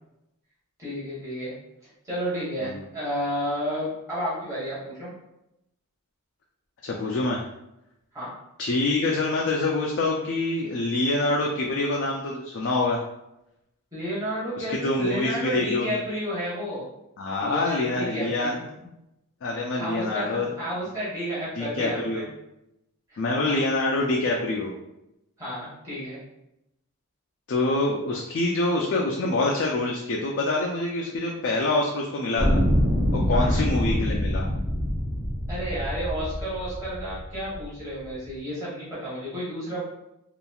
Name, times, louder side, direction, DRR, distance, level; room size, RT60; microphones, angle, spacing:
voice 1, 0.8-1.5 2.0-5.1 8.1-8.3 13.9-16.9 17.4-18.5 18.8-18.9 19.5-22.3 23.1-23.2 23.5-23.6 25.4-26.2 33.3-33.6 35.5-39.9, equal, 15° right, -9 dB, 0.9 m, -31 dB
voice 2, 6.8-7.5 8.6-13.0 14.7-16.0 17.2-18.5 19.4-20.5 21.5-22.2 23.2-24.8 27.5-32.6 33.1-34.5, left 2 dB, 55° left, -1 dB, 0.3 m, -26 dB
sound 1, 32.4-37.6 38.3-38.4, equal, 60° right, 0.7 m, -25 dB
2.8 x 2.4 x 2.3 m, 0.86 s
head